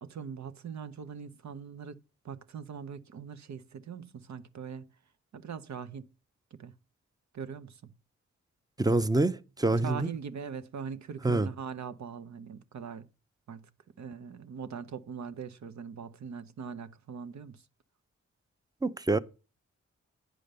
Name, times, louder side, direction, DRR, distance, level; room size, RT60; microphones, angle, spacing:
voice 1, 0.0-4.8 5.3-6.1 6.5-6.7 7.3-7.9 9.7-13.1 13.5-13.7 14.0-17.6, right 6 dB, 65° right, 0.8 m, -41 dB
voice 2, 8.8-10.1 11.2-11.5 18.8-19.2, right 2 dB, 15° right, 0.7 m, -26 dB
9.2 x 5.0 x 6.7 m
cardioid pair, 50°, 30 cm